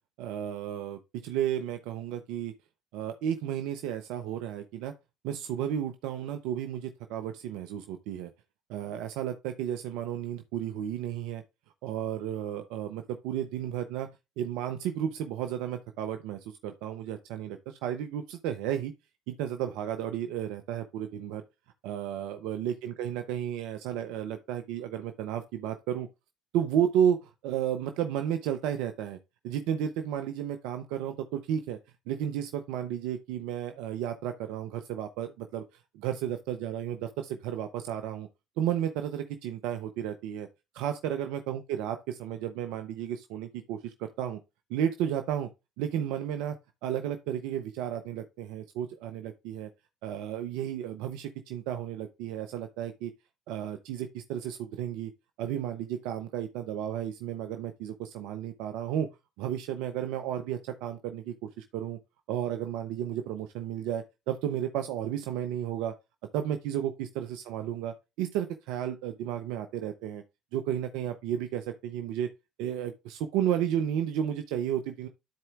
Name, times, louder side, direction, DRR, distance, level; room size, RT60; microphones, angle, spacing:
voice 1, 0.2-2.5 2.9-4.9 5.2-8.3 8.7-11.4 11.8-14.1 14.4-18.9 19.3-21.4 21.8-26.1 26.5-29.2 29.4-31.8 32.1-38.3 38.6-40.5 40.8-44.4 44.7-45.5 45.8-46.6 46.8-49.7 50.0-53.1 53.5-55.1 55.4-59.1 59.4-62.0 62.3-65.9 66.3-70.2 70.5-72.3 72.6-75.1, right 10 dB, 70° right, 0.7 m, -33 dB
13.0 x 4.4 x 2.4 m
hypercardioid pair, 65°, 0 cm